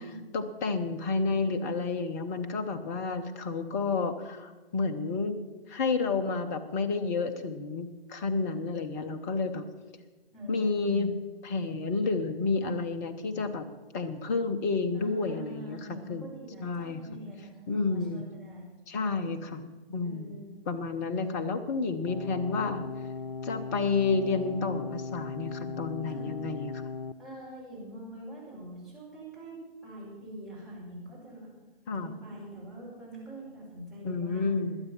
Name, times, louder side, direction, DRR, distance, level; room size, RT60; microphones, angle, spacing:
voice 1, 0.3-5.4 5.7-9.7 10.5-11.1 11.4-13.6 13.9-16.3 16.6-17.0 17.7-18.2 18.9-19.6 19.9-20.4 20.7-22.8 23.4-26.8 31.9-32.1 34.0-34.8, left 4 dB, 15° left, 9 dB, 0.7 m, -30 dB
voice 2, 10.3-11.1 14.9-18.7 20.0-20.5 26.1-26.3 27.2-31.5 32.0-34.5, right 1 dB, ahead, -8 dB, 5.2 m, -44 dB
sound 1, 22.1-27.1, left 4 dB, 70° left, 0.8 m, -38 dB
20.5 x 8.3 x 5.7 m, 1.2 s
figure-of-eight pair, 135°, 31 cm